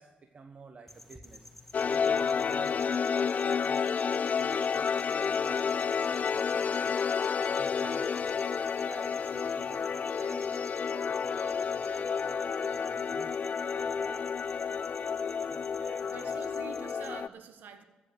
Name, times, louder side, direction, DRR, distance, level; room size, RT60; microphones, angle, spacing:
voice 1, 0.0-10.5 10.9-14.2 14.6-16.4, right 4 dB, 50° right, 6 dB, 1.2 m, -51 dB
sound 1, 0.9-17.2, left 1 dB, 5° left, 1.6 m, -53 dB
sound 2, 1.7-17.3, left 6 dB, 55° left, 0.4 m, -30 dB
voice 2, 16.0-17.8, right 6 dB, 75° right, 8 dB, 1.4 m, -46 dB
14.5 x 7.7 x 7.9 m, 1.2 s
supercardioid pair, 45°, 3 cm